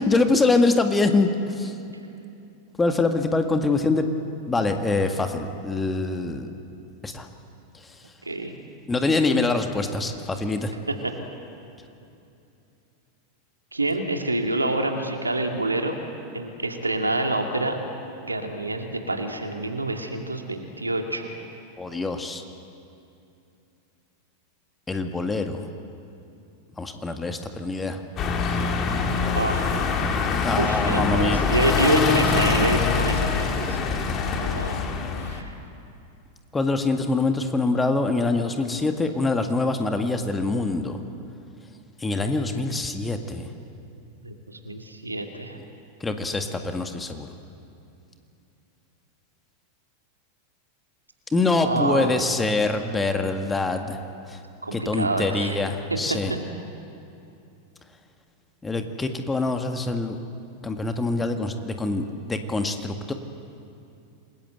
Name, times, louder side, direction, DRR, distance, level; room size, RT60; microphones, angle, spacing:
voice 1, 0.0-1.7 2.8-4.1 4.5-6.5 7.0-7.3 8.9-10.7 21.8-22.4 24.9-25.7 26.8-28.0 30.4-31.4 36.5-41.0 42.0-43.5 46.0-47.3 51.3-54.0 54.3-54.4 54.7-56.3 58.6-60.2 60.6-63.1, left 3 dB, 10° left, 6 dB, 1.9 m, -24 dB
voice 2, 8.2-8.5 10.9-11.1 13.7-15.9 16.3-17.8 18.2-21.4 29.4-30.0 30.6-33.8 34.4-34.8 35.2-35.5 44.2-45.6 51.6-52.2 54.6-55.6 55.9-56.0 56.3-56.4, right 2 dB, 80° right, 4 dB, 2.4 m, -27 dB
sound 1, 28.2-35.4, left 5 dB, 30° left, 2.6 m, -24 dB
27.5 x 21.0 x 8.1 m, 2.7 s
figure-of-eight pair, 90°, 0 cm